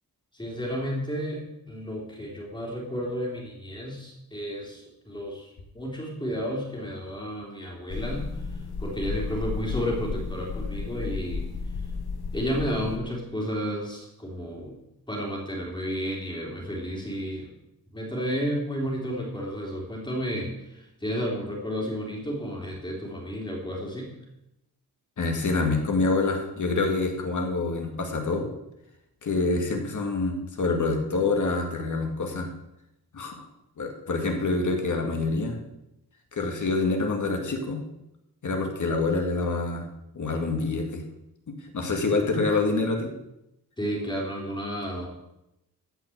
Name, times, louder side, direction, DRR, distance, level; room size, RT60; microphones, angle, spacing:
voice 1, 0.3-5.5 5.7-8.3 8.8-11.5 12.3-14.8 15.1-17.5 17.9-24.1 43.8-45.1, equal, 10° left, -3 dB, 3.6 m, -32 dB
sound 1, 7.9-13.0, left 4 dB, 75° left, 1.6 m, -33 dB
voice 2, 25.2-28.5 29.2-32.5 33.1-33.4 33.8-35.6 36.3-37.8 38.4-39.9 40.1-41.0 41.5-43.1, left 3 dB, 50° left, 2 dB, 2.1 m, -26 dB
15.0 x 5.9 x 7.9 m, 0.88 s
wide cardioid pair, 170°, 38 cm